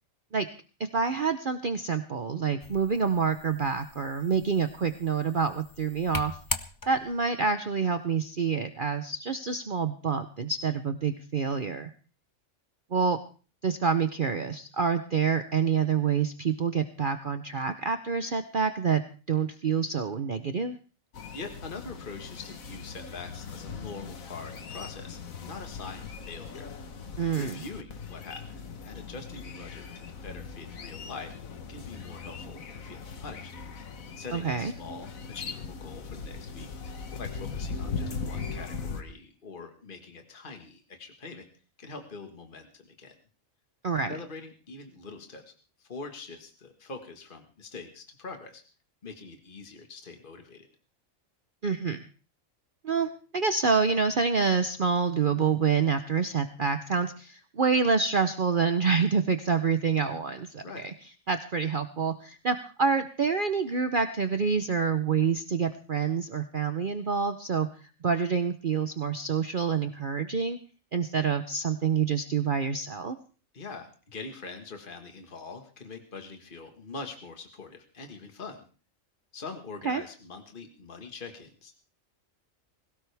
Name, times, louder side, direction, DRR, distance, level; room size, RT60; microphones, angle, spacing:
voice 1, 0.9-6.4 6.9-11.9 12.9-13.2 13.6-19.0 19.3-20.8 27.2-27.6 34.3-34.7 43.8-44.1 51.6-52.0 52.8-60.9 61.3-67.7 68.0-70.6 70.9-73.2 79.8-80.0, right 5 dB, 45° right, 8 dB, 0.9 m, -27 dB
sound 1, 2.6-7.3, left 3 dB, 20° left, 0.8 m, -40 dB
sound 2, 21.1-39.0, left 5 dB, 85° left, 1.7 m, -39 dB
voice 2, 21.3-26.7 27.4-31.3 31.7-33.5 34.2-36.7 37.2-41.5 41.8-43.2 44.1-45.4 45.8-48.6 49.0-50.7 60.6-60.9 73.5-78.6 79.3-81.7, left 4 dB, 40° left, 5 dB, 1.9 m, -43 dB
20.5 x 17.5 x 3.5 m, 0.38 s
omnidirectional pair, 1.4 m